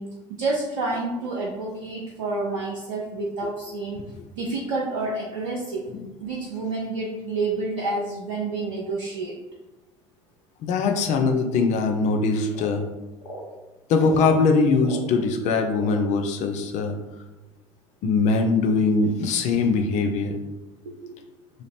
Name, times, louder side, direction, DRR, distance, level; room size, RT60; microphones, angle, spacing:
voice 1, 0.0-4.0 4.3-5.9 6.2-9.4 20.9-21.2, right 3 dB, 80° right, -3 dB, 0.5 m, -29 dB
voice 2, 10.6-12.9 13.9-17.0 18.0-20.4, left 4 dB, 50° left, 5 dB, 0.5 m, -21 dB
sound 1, 12.5-12.8 13.2-13.5 14.0-14.3 14.8-15.1 15.7-16.0, equal, 75° left, 0.8 m, -39 dB
2.8 x 2.5 x 3.3 m, 1.1 s
figure-of-eight pair, 65°, 16 cm